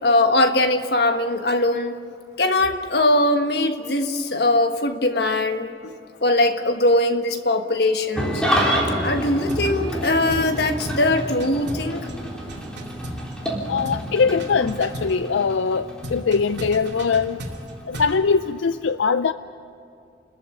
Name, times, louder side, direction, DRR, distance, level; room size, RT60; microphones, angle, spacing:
voice 1, 0.0-2.0 2.4-5.9 6.2-8.4 9.0-12.1, left 2 dB, 60° left, 7 dB, 1.4 m, -21 dB
Engine starting / Idling, 8.1-18.7, equal, 5° left, 3.5 m, -29 dB
sound 1, 9.5-9.7 10.0-10.6 10.8-11.1 11.4-13.6 13.8-14.1 14.4-15.2 16.0-18.2, right 1 dB, 70° right, 2.5 m, -35 dB
voice 2, 13.7-17.4 17.9-19.3, left 5 dB, 80° left, 12 dB, 0.5 m, -21 dB
29.5 x 14.5 x 8.9 m, 2.6 s
head